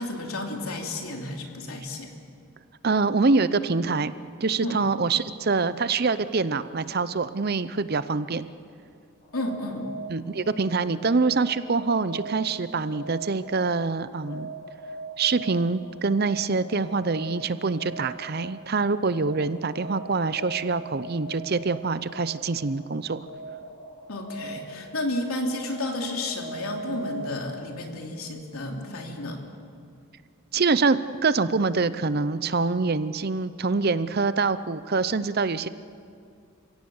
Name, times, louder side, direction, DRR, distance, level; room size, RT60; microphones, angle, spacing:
voice 1, 0.0-2.1 4.6-4.8 9.3-9.9 24.1-29.4, left 1 dB, 80° left, 2 dB, 3.1 m, -32 dB
voice 2, 2.8-4.1 4.4-8.5 10.1-14.5 15.2-23.2 30.5-35.7, right 4 dB, 45° right, 14 dB, 0.6 m, -25 dB
sound 1, 9.2-27.7, right 2 dB, 40° left, 6.3 m, -41 dB
29.5 x 17.0 x 7.2 m, 2.3 s
head